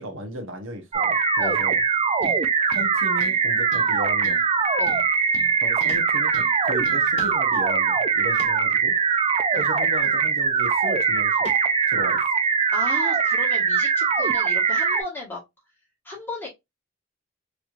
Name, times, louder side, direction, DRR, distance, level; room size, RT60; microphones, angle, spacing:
voice 1, 0.0-1.8 2.7-4.4 5.6-8.9 9.5-11.4 11.9-12.2, equal, 65° right, 1.0 m, -35 dB
sound 1, 0.9-15.0, right 5 dB, 30° right, 0.4 m, -22 dB
voice 2, 1.4-1.7 2.2-2.4 4.8-5.0 9.5-9.7 12.7-15.4 16.0-16.5, left 2 dB, 10° left, 1.3 m, -35 dB
sound 2, 2.2-2.4 2.7-3.4 3.7-3.9 4.2-4.5 4.9-6.0 6.3-6.5 6.8-7.3, left 2 dB, 60° left, 0.7 m, -42 dB
sound 3, 5.6-5.7 5.9-6.2 6.5-6.6 7.2-7.5 8.1-8.8 9.9-10.5 11.4-11.7 12.2-12.3, left 2 dB, 30° left, 1.1 m, -43 dB
3.2 x 3.0 x 2.5 m
head